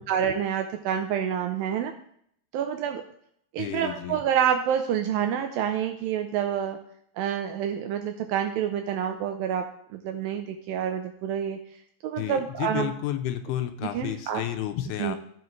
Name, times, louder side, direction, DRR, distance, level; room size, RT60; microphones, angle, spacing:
voice 1, 0.0-1.9 2.5-3.0 3.5-6.8 7.2-9.7 9.9-11.6 12.0-12.9 13.9-14.4 15.0-15.2, right 9 dB, 80° right, 6 dB, 2.1 m, -28 dB
voice 2, 3.6-4.2 12.2-15.2, left 12 dB, 85° left, 8 dB, 2.6 m, -31 dB
14.5 x 5.7 x 3.2 m, 0.66 s
omnidirectional pair, 4.5 m